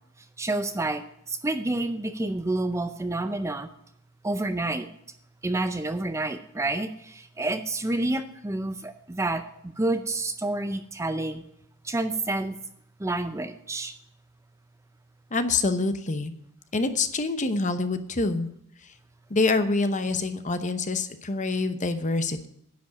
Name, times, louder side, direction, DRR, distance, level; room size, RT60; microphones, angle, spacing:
voice 1, 0.4-3.7 4.2-4.9 5.4-11.4 11.8-12.6 13.0-13.9, right 2 dB, 15° right, 9 dB, 0.5 m, -29 dB
voice 2, 15.3-16.3 16.7-18.5 19.3-22.5, left 3 dB, 35° left, 10 dB, 0.8 m, -26 dB
10.5 x 5.2 x 8.4 m, 0.75 s
head